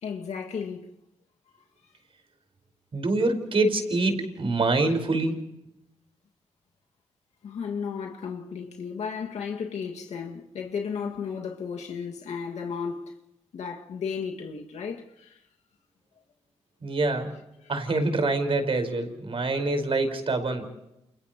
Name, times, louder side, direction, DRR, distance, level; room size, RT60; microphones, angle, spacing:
voice 1, 0.0-0.9 7.4-13.1 13.5-15.4, left 6 dB, 85° left, 2.1 m, -34 dB
voice 2, 2.9-5.4 16.8-17.4 17.7-20.7, right 2 dB, 55° right, 4.9 m, -25 dB
29.5 x 29.0 x 3.1 m
cardioid pair, 70°, 11 cm